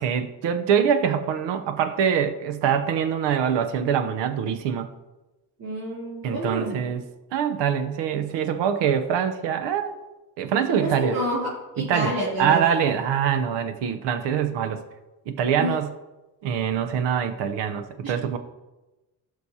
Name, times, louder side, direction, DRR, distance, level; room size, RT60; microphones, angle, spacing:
voice 1, 0.0-4.9 6.2-7.0 7.3-9.9 10.4-11.2 11.8-14.8 15.3-15.9 16.4-18.4, right 8 dB, 85° right, 8 dB, 0.8 m, -24 dB
voice 2, 5.6-6.8 10.8-12.6 15.6-15.7 18.0-18.1, right 1 dB, 55° right, -7 dB, 2.8 m, -28 dB
16.0 x 6.3 x 2.8 m, 1.1 s
cardioid pair, 130°, 41 cm